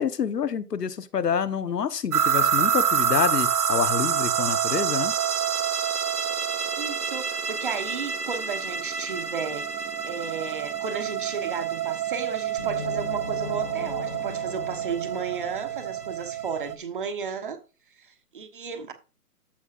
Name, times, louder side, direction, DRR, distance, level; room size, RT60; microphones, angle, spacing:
voice 1, 0.0-5.1, left 7 dB, 85° left, 1.3 m, -27 dB
sound 1, 2.1-16.8, right 8 dB, 70° right, 1.7 m, -27 dB
voice 2, 6.8-9.7 10.0-17.6 18.0-18.9, right 6 dB, 35° right, 1.3 m, -34 dB
sound 2, 12.6-16.3, left 4 dB, 35° left, 0.9 m, -39 dB
13.5 x 5.6 x 2.6 m
hypercardioid pair, 175°, 47 cm